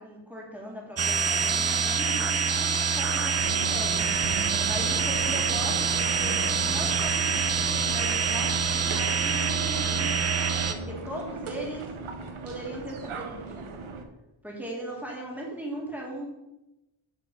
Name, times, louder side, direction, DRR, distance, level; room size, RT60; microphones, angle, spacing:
voice 1, 0.0-11.9 12.4-13.8 14.4-16.2, right 1 dB, 5° right, -3 dB, 1.8 m, -39 dB
sound 1, 1.0-10.7, right 5 dB, 35° right, 0.5 m, -26 dB
sound 2, 3.4-14.0, right 4 dB, 80° right, 0.9 m, -38 dB
6.3 x 5.3 x 5.2 m, 0.97 s
wide cardioid pair, 150°, 48 cm